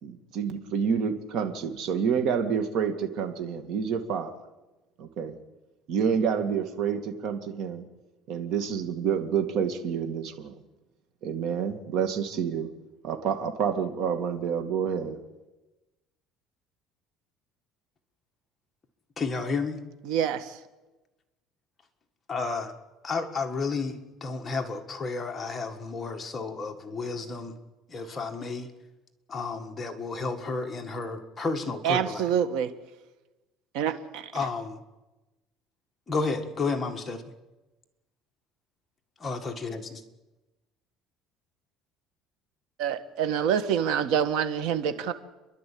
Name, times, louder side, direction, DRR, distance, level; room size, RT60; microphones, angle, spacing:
voice 1, 0.0-4.3 5.0-5.4 5.9-7.8 8.3-10.6 11.2-12.7 13.0-15.2, right 7 dB, 55° right, 7 dB, 2.2 m, -28 dB
voice 2, 19.2-19.8 22.3-22.7 23.0-27.5 27.9-28.7 29.3-32.3 34.3-34.8 36.1-37.2 39.2-40.0, left 4 dB, 20° left, 3 dB, 1.8 m, -32 dB
voice 3, 20.1-20.4 31.8-32.7 33.7-34.2 42.8-45.1, right 8 dB, 75° right, 10 dB, 1.6 m, -26 dB
29.5 x 11.5 x 8.7 m, 1.1 s
cardioid pair, 145°, 0 cm